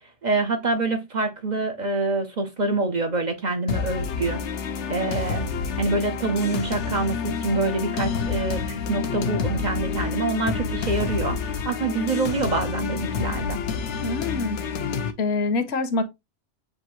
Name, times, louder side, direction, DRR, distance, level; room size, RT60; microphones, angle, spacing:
voice 1, 0.2-5.5 5.8-13.6, right 3 dB, 45° right, 0.7 m, -26 dB
sound 1, 3.7-15.1, left 6 dB, 90° left, 1.0 m, -28 dB
voice 2, 14.0-14.6 15.2-16.0, left 3 dB, 70° left, 1.0 m, -25 dB
6.6 x 2.6 x 3.0 m
omnidirectional pair, 1.2 m